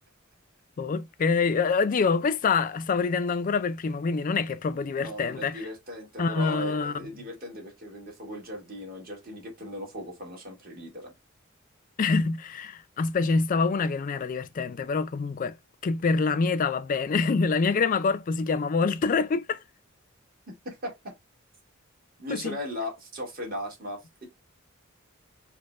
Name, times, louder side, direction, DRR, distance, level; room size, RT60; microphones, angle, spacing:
voice 1, 0.8-5.6 6.2-6.9 12.0-15.6 15.8-19.6 22.3-22.6, left 4 dB, 40° left, 0.3 m, -26 dB
voice 2, 5.0-11.1 20.5-21.1 22.2-24.3, left 1 dB, 45° right, 1.7 m, -37 dB
4.2 x 2.2 x 3.0 m
head